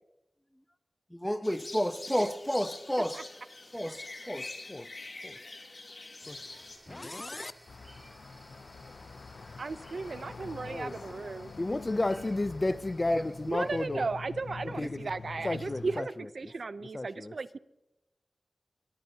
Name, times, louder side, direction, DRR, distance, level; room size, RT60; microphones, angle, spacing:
voice 1, 1.1-3.2 3.7-4.9 10.8-10.9 11.6-12.2 12.7-12.8 13.1-13.3 13.6-14.0 14.8-14.9, equal, 5° left, 1.2 m, -33 dB
sound 1, 1.4-6.8, left 2 dB, 55° left, 2.9 m, -45 dB
sound 2, 6.2-13.9, right 1 dB, 15° right, 4.3 m, -57 dB
voice 2, 6.9-7.5 10.3-10.9 11.6-14.1 14.8-15.1 15.4-16.5 16.9-17.3, left 2 dB, 35° left, 0.5 m, -33 dB
sound 3, 7.7-16.0, left 4 dB, 85° left, 0.5 m, -45 dB
voice 3, 9.6-11.5 13.5-17.6, right 4 dB, 70° right, 0.6 m, -36 dB
23.0 x 18.5 x 2.8 m
cardioid pair, 50°, 0 cm